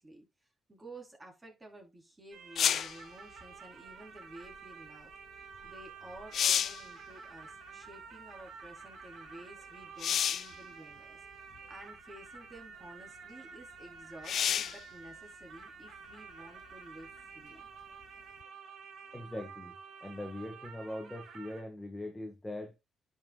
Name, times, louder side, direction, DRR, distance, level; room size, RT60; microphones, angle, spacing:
voice 1, 0.0-17.7, right 1 dB, 20° right, 4.1 m, -53 dB
sound 1, 2.3-21.6, right 5 dB, 65° right, 3.1 m, -50 dB
sound 2, 2.5-3.0 5.7-5.8 6.2-6.9 10.0-10.5 11.5-11.6 14.2-14.8 18.4-18.5, left 9 dB, 65° left, 0.4 m, -29 dB
voice 2, 19.1-19.7 20.0-22.8, left 1 dB, 15° left, 1.8 m, -41 dB
10.5 x 5.8 x 2.4 m
cardioid pair, 90°, 0 cm